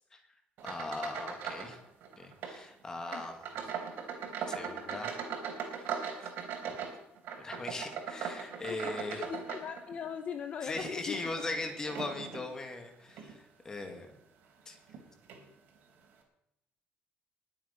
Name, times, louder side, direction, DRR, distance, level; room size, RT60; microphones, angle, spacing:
voice 1, 0.6-1.8 2.2-3.5 4.5-5.2 5.7-6.3 7.4-9.2 10.6-14.1 14.7-14.8, left 2 dB, 15° left, 5 dB, 2.2 m, -40 dB
sound 1, 0.6-1.8 2.0-2.6 3.0-10.1 10.6-12.5 13.1-13.3 13.9-14.0 14.9-15.0 15.3-15.4, right 7 dB, 70° right, 3.7 m, -39 dB
voice 2, 9.1-11.2, left 7 dB, 40° left, 8 dB, 0.8 m, -39 dB
21.0 x 8.6 x 5.4 m, 0.85 s
cardioid pair, 170°, 4 cm